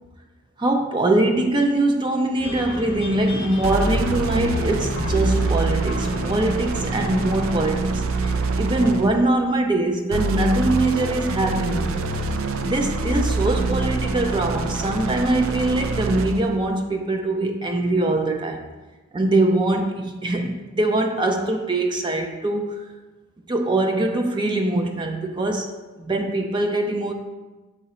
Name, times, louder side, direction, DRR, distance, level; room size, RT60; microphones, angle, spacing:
voice 1, 0.6-11.9 12.6-18.7 19.1-22.8 23.5-25.7 26.0-27.1, right 2 dB, 20° right, 4 dB, 0.4 m, -22 dB
sound 1, 2.4-7.5, left 1 dB, 50° left, 0.8 m, -34 dB
sound 2, 3.6-9.2 10.1-16.5, right 3 dB, 85° right, 0.5 m, -25 dB
6.9 x 3.8 x 4.2 m, 1.2 s
head